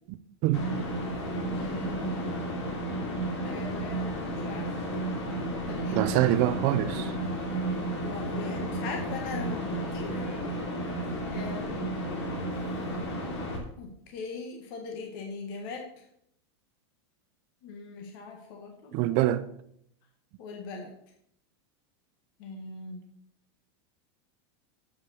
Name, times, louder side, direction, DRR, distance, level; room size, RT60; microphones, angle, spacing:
sound 1, 0.5-13.6, right 1 dB, 80° left, 3.0 m, -32 dB
voice 1, 1.5-2.2 3.4-4.9 5.7-6.3 7.9-11.0 11.3-11.9 13.8-16.1 17.6-19.2 20.4-20.9 22.4-23.0, left 4 dB, 50° left, 1.6 m, -40 dB
voice 2, 5.9-7.1 18.9-19.5, right 14 dB, 35° right, 0.5 m, -25 dB
8.0 x 5.7 x 7.0 m
supercardioid pair, 165°, 14 cm